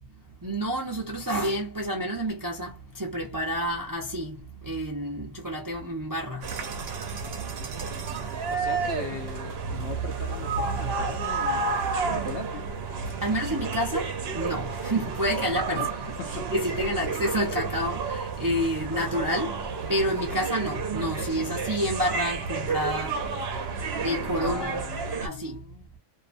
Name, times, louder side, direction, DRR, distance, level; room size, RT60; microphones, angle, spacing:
voice 1, 0.4-6.5 8.2-8.3 13.2-15.9 16.5-24.8 25.2-25.6, equal, 30° right, 0.4 m, -29 dB
sound 1, 6.4-25.3, right 4 dB, 60° right, 0.8 m, -31 dB
voice 2, 8.5-11.8 12.1-12.7 15.7-16.5 24.4-25.9, left 5 dB, 60° left, 0.7 m, -39 dB
2.7 x 2.1 x 2.5 m
omnidirectional pair, 1.4 m